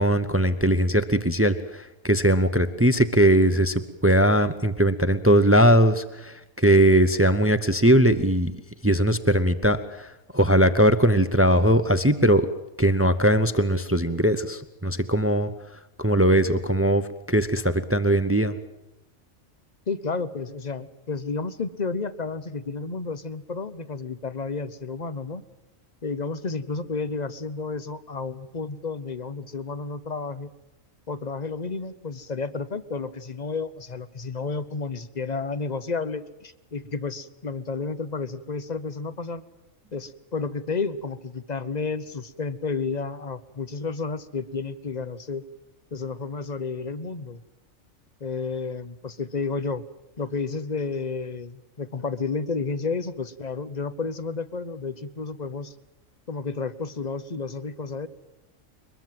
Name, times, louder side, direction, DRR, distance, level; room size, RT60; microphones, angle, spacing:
voice 1, 0.0-8.5 8.8-10.1 10.3-12.5 12.8-15.5 16.0-18.6, right 1 dB, 15° right, 12 dB, 0.6 m, -20 dB
voice 2, 19.9-25.4 26.0-30.5 31.1-39.4 39.9-45.4 45.9-47.4 48.2-49.8 50.2-55.7 56.3-58.1, left 4 dB, 35° left, 13 dB, 0.9 m, -31 dB
23.0 x 21.5 x 7.7 m, 0.95 s
omnidirectional pair, 1.4 m